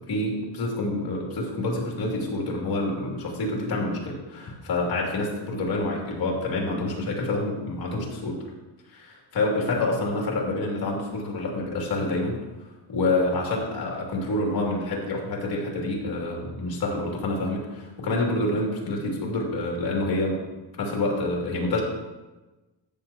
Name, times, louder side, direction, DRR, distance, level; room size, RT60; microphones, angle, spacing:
voice 1, 0.1-8.4 8.9-12.4 12.9-20.4 20.8-21.8, left 2 dB, 55° left, -2 dB, 2.7 m, -27 dB
14.0 x 7.2 x 2.9 m, 1.1 s
cardioid pair, 165°, 44 cm